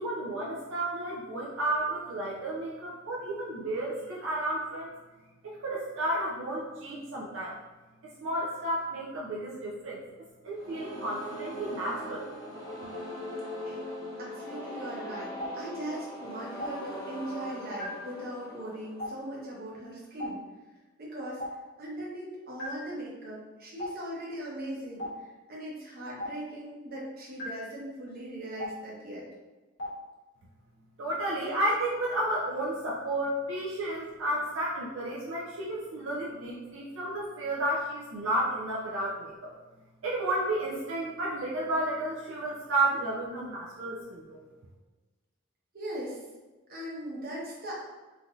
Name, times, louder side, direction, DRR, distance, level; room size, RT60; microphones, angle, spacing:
voice 1, 0.0-5.0 5.4-7.6 8.0-10.0 10.4-12.3 31.0-39.5 40.0-44.4, right 1 dB, 75° right, -5 dB, 0.5 m, -32 dB
sound 1, 10.5-19.4, equal, 20° left, 0.7 m, -40 dB
voice 2, 14.2-20.4 21.0-21.4 21.8-29.3 45.7-46.2 46.7-47.8, right 1 dB, 50° right, -4 dB, 0.9 m, -39 dB
Stream, 15.4-15.5 16.6-16.7 17.8-17.9 19.0-19.1 20.2-20.3 21.4-21.5 22.6-22.7 23.8-23.9 25.0-25.1 26.2-26.3 27.4-27.5 28.6-28.7 29.8-29.9, left 1 dB, 65° left, 1.1 m, -34 dB
3.3 x 2.6 x 2.4 m, 1.2 s
head